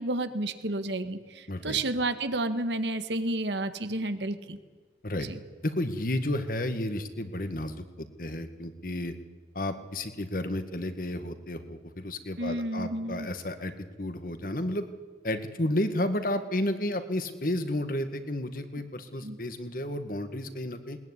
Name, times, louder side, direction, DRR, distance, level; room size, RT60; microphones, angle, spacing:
voice 1, 0.0-4.6 5.2-5.4 12.4-13.3 19.2-19.4, right 2 dB, 90° right, 10 dB, 1.8 m, -31 dB
voice 2, 1.5-1.8 5.0-5.3 5.6-9.2 9.6-14.9 15.2-21.0, left 1 dB, 50° left, 9 dB, 1.9 m, -32 dB
20.5 x 20.0 x 9.9 m, 1.4 s
head